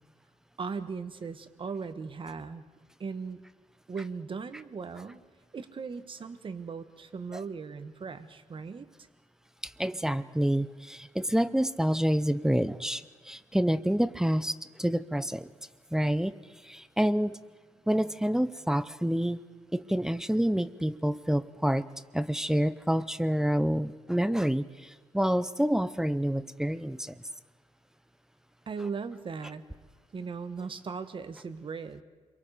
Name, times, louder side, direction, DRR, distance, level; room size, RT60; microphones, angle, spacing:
voice 1, 0.6-2.6 3.0-3.4 3.9-5.2 5.5-8.9 28.7-29.6 30.1-32.0, right 5 dB, 40° right, 10 dB, 1.3 m, -38 dB
voice 2, 9.6-15.5 15.9-16.4 16.6-17.4 17.9-19.4 19.7-21.9 22.1-27.2, equal, 5° right, 15 dB, 0.7 m, -28 dB
29.0 x 23.0 x 5.0 m, 1.4 s
cardioid pair, 95°, 13 cm